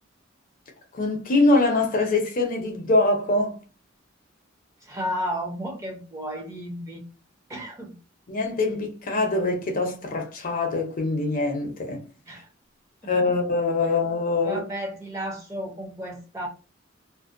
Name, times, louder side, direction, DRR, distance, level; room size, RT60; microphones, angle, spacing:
voice 1, 0.9-3.6 8.3-12.0 13.1-14.6, left 2 dB, 45° left, 0.6 m, -23 dB
voice 2, 4.8-7.0 7.5-7.9 12.3-12.5 13.2-13.3 14.4-16.5, equal, 15° right, 0.6 m, -33 dB
2.5 x 2.1 x 2.4 m
head